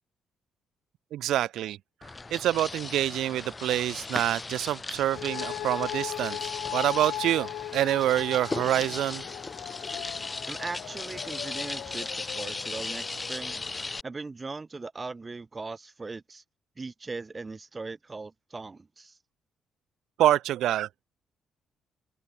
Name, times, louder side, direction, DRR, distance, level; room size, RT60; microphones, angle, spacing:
voice 1, 1.1-1.8 2.3-9.2 20.2-20.9, right 13 dB, 80° right, 0.5 m, -26 dB
sound 1, 2.0-14.0, left 3 dB, 25° left, 2.1 m, -37 dB
sound 2, 5.1-14.0, left 13 dB, 85° left, 1.0 m, -39 dB
voice 2, 10.5-13.6 14.0-16.4 16.8-19.2, right 3 dB, 25° right, 4.0 m, -39 dB
cardioid pair, 90°, 0 cm